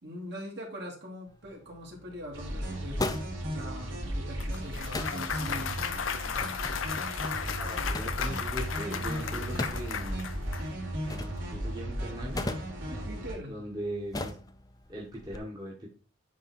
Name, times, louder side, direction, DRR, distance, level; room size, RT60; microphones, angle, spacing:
voice 1, 0.0-5.9 12.9-13.6, equal, 60° right, -1 dB, 2.7 m, -42 dB
sound 1, 1.3-15.4, left 2 dB, 20° left, 0.6 m, -41 dB
sound 2, 2.3-13.3, equal, 75° right, 3.3 m, -35 dB
Clapping / Cheering / Applause, 4.4-10.6, left 7 dB, 85° left, 0.6 m, -35 dB
voice 2, 7.6-10.2 11.5-12.4 13.4-14.3 14.9-15.9, right 1 dB, 20° right, -3 dB, 1.4 m, -39 dB
9.2 x 3.7 x 4.3 m, 0.35 s
head